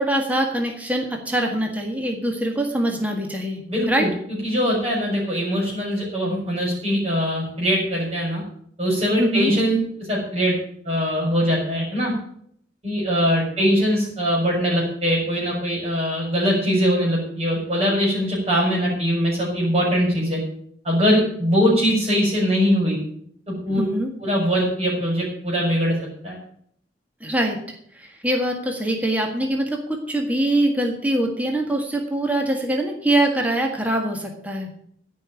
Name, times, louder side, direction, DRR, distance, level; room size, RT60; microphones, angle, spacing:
voice 1, 0.0-3.6 3.9-4.1 9.2-9.5 23.7-24.1 27.2-34.8, right 1 dB, 10° right, 2 dB, 1.7 m, -23 dB
voice 2, 3.7-4.1 4.4-8.4 8.8-10.6 10.8-12.1 12.8-20.4 20.8-23.0 23.5-23.8 24.2-26.0 26.2-26.4, equal, 30° right, -3 dB, 5.1 m, -22 dB
15.0 x 5.6 x 9.0 m, 0.66 s
head